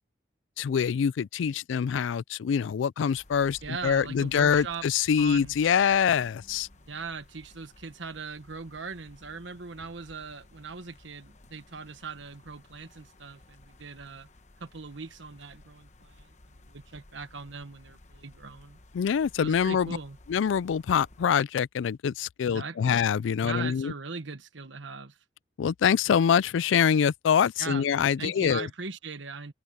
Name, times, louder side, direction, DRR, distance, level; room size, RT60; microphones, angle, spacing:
voice 1, 0.6-6.7 18.9-20.0 20.3-23.9 25.6-28.7, left 7 dB, 85° left, 0.3 m, -25 dB
sound 1, 3.1-21.4, left 1 dB, 35° left, 1.0 m, -55 dB
voice 2, 3.6-4.9 5.2-5.6 6.8-14.3 14.6-18.8 19.4-20.2 22.4-23.0 23.4-25.2 27.6-27.9 28.2-29.5, right 4 dB, 80° right, 1.3 m, -40 dB
open air
head